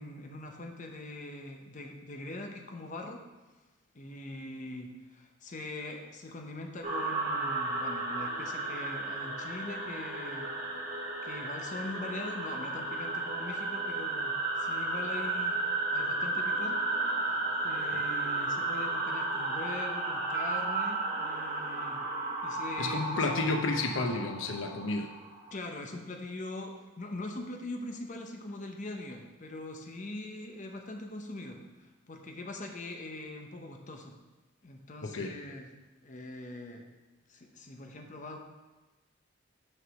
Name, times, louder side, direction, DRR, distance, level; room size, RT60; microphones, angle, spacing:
voice 1, 0.0-3.2 3.9-10.5 11.2-15.6 15.9-16.8 17.6-22.1 22.4-23.3 25.5-34.2 34.6-35.7 36.0-36.9 37.3-38.4, left 2 dB, 40° left, 3 dB, 0.8 m, -42 dB
sound 1, 6.8-25.5, right 2 dB, 45° right, 2.2 m, -33 dB
voice 2, 22.8-25.1 35.0-35.3, left 3 dB, 90° left, 4 dB, 0.7 m, -31 dB
6.5 x 4.8 x 6.1 m, 1.2 s
head